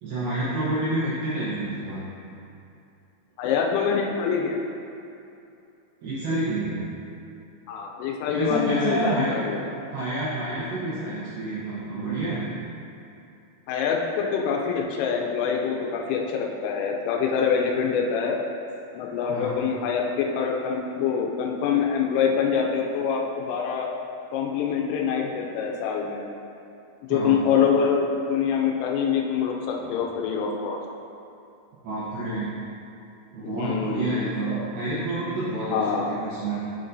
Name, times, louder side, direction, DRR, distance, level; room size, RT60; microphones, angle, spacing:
voice 1, 0.0-2.0 6.0-6.8 8.3-9.4 9.9-12.5 19.3-19.6 27.1-27.4 31.8-32.5 33.3-36.5, right 2 dB, 80° right, -10 dB, 2.1 m, -28 dB
voice 2, 3.4-4.6 7.7-9.6 13.7-18.4 19.0-23.9 24.3-26.2 27.1-30.8 33.4-34.2 34.5-34.7 35.7-36.1, left 6 dB, 90° left, 0 dB, 3.2 m, -25 dB
7.1 x 6.7 x 2.6 m, 2.7 s
omnidirectional pair, 5.6 m